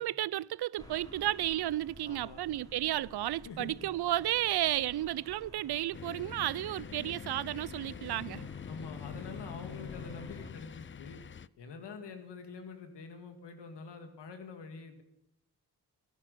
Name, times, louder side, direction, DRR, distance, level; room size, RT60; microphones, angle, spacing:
voice 1, 0.0-8.5, right 14 dB, 70° right, 0.5 m, -33 dB
sound 1, 0.8-10.5, left 1 dB, 10° left, 3.5 m, -53 dB
voice 2, 2.1-2.4 3.4-3.9 6.9-7.2 8.7-11.2 11.6-15.0, left 4 dB, 85° left, 2.0 m, -46 dB
sound 2, 5.9-11.5, left 7 dB, 30° left, 0.5 m, -45 dB
13.5 x 11.5 x 6.9 m
cardioid pair, 45°, 41 cm